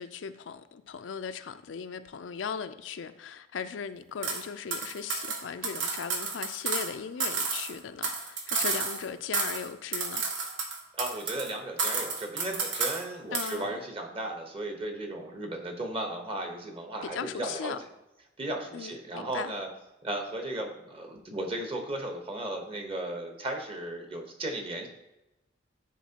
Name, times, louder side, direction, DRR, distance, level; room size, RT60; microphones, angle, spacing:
voice 1, 0.0-10.2 13.3-13.8 17.1-17.8 18.7-19.5, left 6 dB, 85° left, 0.4 m, -38 dB
sound 1, 4.2-4.4 4.7-6.9 7.2-9.1 9.3-9.7 9.9-11.5 11.8-13.0 13.3-13.6, right 4 dB, 90° right, 1.1 m, -31 dB
voice 2, 10.9-17.9 18.4-19.7 20.0-24.9, right 1 dB, 30° right, 1.0 m, -35 dB
10.0 x 4.4 x 2.9 m
head